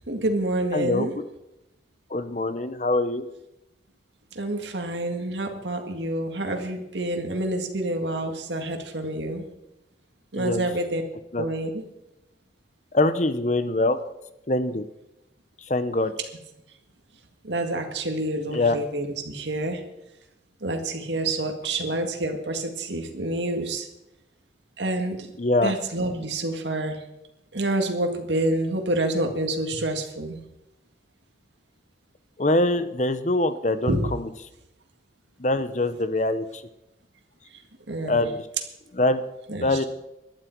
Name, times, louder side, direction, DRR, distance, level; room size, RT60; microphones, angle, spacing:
voice 1, 0.1-1.1 4.3-9.4 10.3-11.0 11.4-11.8 17.4-19.8 20.6-23.9 24.8-25.3 25.6-27.0 27.5-30.4 33.9-34.1 37.5-37.6 37.9-38.3 39.5-39.8, right 1 dB, 90° right, 4 dB, 1.9 m, -28 dB
voice 2, 0.7-1.1 2.1-3.2 10.3-10.7 11.3-11.4 12.9-14.0 14.5-14.9 15.7-16.1 18.5-18.8 25.4-25.7 32.4-34.3 35.4-36.6 38.0-38.4 38.9-39.2 39.6-39.8, left 2 dB, 40° left, 12 dB, 0.9 m, -23 dB
18.5 x 12.0 x 4.6 m, 0.90 s
head